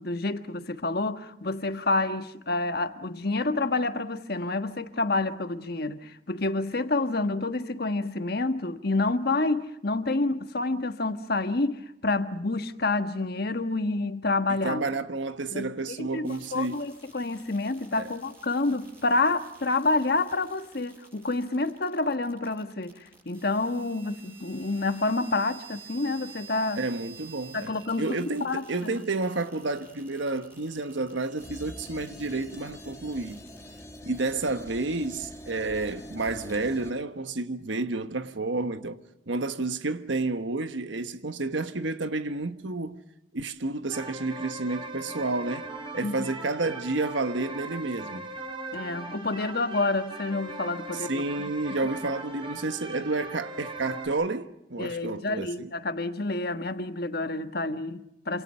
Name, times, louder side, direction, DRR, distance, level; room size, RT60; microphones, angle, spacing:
voice 1, 0.0-14.8 15.5-22.9 23.2-26.8 27.5-28.6 46.0-46.3 48.7-51.5 54.8-58.4, left 2 dB, 55° left, 1.4 m, -28 dB
voice 2, 14.6-16.8 18.0-18.1 26.8-27.7 28.0-33.4 34.0-39.0 39.3-43.0 43.3-48.4 50.9-55.7, right 3 dB, 80° right, 1.3 m, -30 dB
sound 1, 16.2-33.8, right 5 dB, 10° right, 6.9 m, -52 dB
sound 2, 31.4-36.9, equal, 15° left, 1.3 m, -44 dB
sound 3, 43.9-54.1, right 2 dB, 30° right, 5.6 m, -39 dB
27.5 x 27.0 x 5.7 m
head